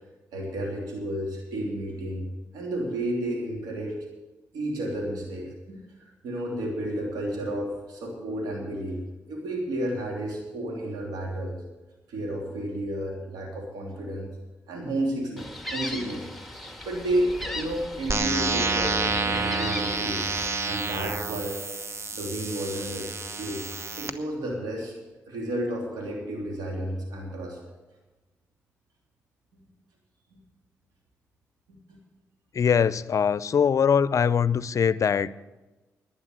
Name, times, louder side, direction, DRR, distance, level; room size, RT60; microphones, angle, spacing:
voice 1, 0.3-2.3 2.5-4.0 4.5-9.0 9.3-11.5 12.1-14.3 14.7-20.3 20.6-21.6 22.1-23.6 24.0-24.9 25.3-27.6 31.9-32.0, right 1 dB, 80° right, 0 dB, 3.1 m, -32 dB
Gull seagull, 15.4-20.5, left 1 dB, ahead, 1.8 m, -37 dB
sound 1, 18.1-24.1, right 3 dB, 45° right, 1.1 m, -29 dB
voice 2, 32.5-35.3, left 7 dB, 55° left, 18 dB, 0.5 m, -22 dB
11.0 x 10.0 x 8.0 m, 1.1 s
supercardioid pair, 45°, 7 cm